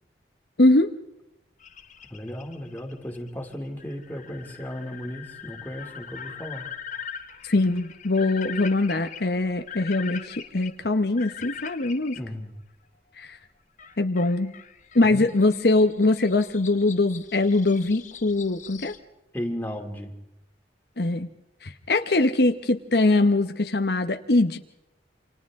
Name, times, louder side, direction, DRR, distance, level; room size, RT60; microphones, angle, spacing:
voice 1, 0.6-0.9 7.4-12.2 13.1-13.4 14.0-14.5 14.9-18.9 21.0-21.3 21.6-24.6, left 2 dB, 60° left, 7 dB, 1.0 m, -22 dB
sound 1, 1.6-12.2 13.8-19.0, left 8 dB, 45° left, 1.3 m, -42 dB
voice 2, 2.1-6.7 12.1-12.5 15.1-15.2 19.3-20.1, equal, 10° left, 1 dB, 2.6 m, -35 dB
28.5 x 27.0 x 3.7 m, 0.89 s
head